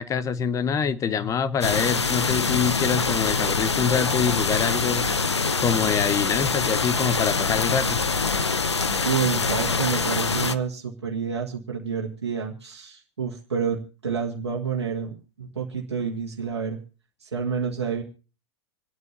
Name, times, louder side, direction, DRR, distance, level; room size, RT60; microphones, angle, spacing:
voice 1, 0.0-5.1 5.6-8.0, left 7 dB, 25° left, 14 dB, 0.9 m, -25 dB
sound 1, 1.6-10.6, left 4 dB, 90° left, 0.8 m, -24 dB
voice 2, 9.0-16.8 17.2-18.0, right 6 dB, 80° right, -2 dB, 1.8 m, -29 dB
28.0 x 9.4 x 2.8 m, 0.35 s
figure-of-eight pair, 100°, 14 cm